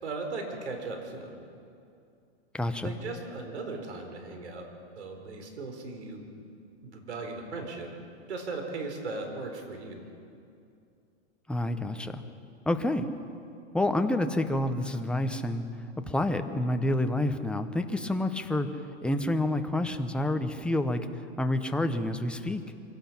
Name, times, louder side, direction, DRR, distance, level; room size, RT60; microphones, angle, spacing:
voice 1, 0.0-1.3 2.8-4.7 5.0-6.3 6.8-7.9 8.3-10.1, right 3 dB, 90° right, 4 dB, 4.3 m, -37 dB
voice 2, 2.5-2.9 11.5-12.2 12.6-13.1 13.7-15.7 16.1-22.6, left 1 dB, 5° left, 7 dB, 0.8 m, -28 dB
25.0 x 17.5 x 6.0 m, 2.5 s
hypercardioid pair, 135°, 33 cm